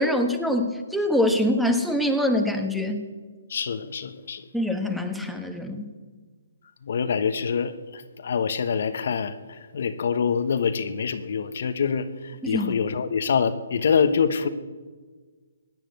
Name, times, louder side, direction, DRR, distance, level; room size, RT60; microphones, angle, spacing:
voice 1, 0.0-3.1 4.5-5.9 12.4-12.8, left 1 dB, ahead, 6 dB, 1.3 m, -24 dB
voice 2, 3.5-4.4 6.8-14.5, left 6 dB, 60° left, 10 dB, 1.1 m, -25 dB
16.5 x 10.0 x 8.0 m, 1.4 s
hypercardioid pair, 150°, 0 cm